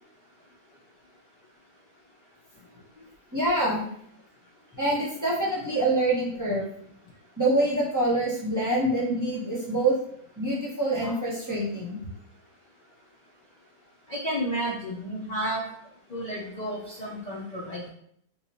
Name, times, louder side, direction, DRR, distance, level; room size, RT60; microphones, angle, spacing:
voice 1, 3.3-3.9 4.7-6.7 7.4-10.0 10.4-12.0, right 1 dB, 15° right, -7 dB, 0.7 m, -25 dB
voice 2, 14.1-15.7 16.1-17.9, right 1 dB, 90° left, -5 dB, 0.3 m, -31 dB
3.0 x 2.4 x 4.0 m, 0.68 s
omnidirectional pair, 1.6 m